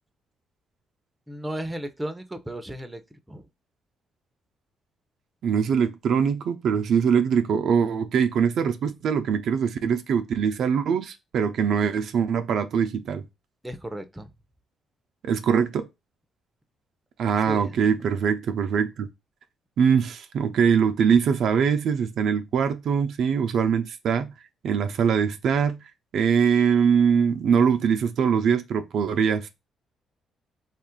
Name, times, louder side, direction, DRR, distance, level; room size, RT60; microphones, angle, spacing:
voice 1, 1.3-3.0 3.3-3.5 13.6-14.3 17.5-17.7, right 1 dB, 10° right, 0.6 m, -34 dB
voice 2, 5.4-13.2 15.2-15.9 17.2-19.1 19.8-24.3 24.6-25.8 26.1-29.5, right 7 dB, 70° right, 0.4 m, -22 dB
3.0 x 2.4 x 4.3 m
cardioid pair, 90°, 0 cm